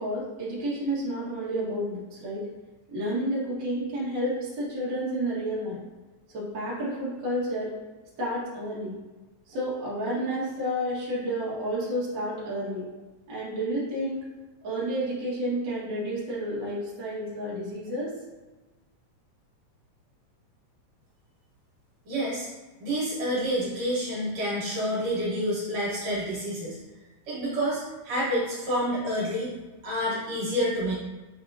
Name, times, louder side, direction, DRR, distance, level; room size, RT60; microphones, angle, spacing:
voice 1, 0.0-2.5 2.9-5.8 6.3-7.7 8.2-9.0 9.5-12.8 13.3-14.2 14.6-18.1, equal, 45° right, -8 dB, 1.9 m, -30 dB
voice 2, 22.1-22.5 22.8-26.8 27.3-29.5 29.8-30.9, equal, 65° right, -7 dB, 2.4 m, -28 dB
7.5 x 2.7 x 2.6 m, 1.2 s
omnidirectional pair, 3.4 m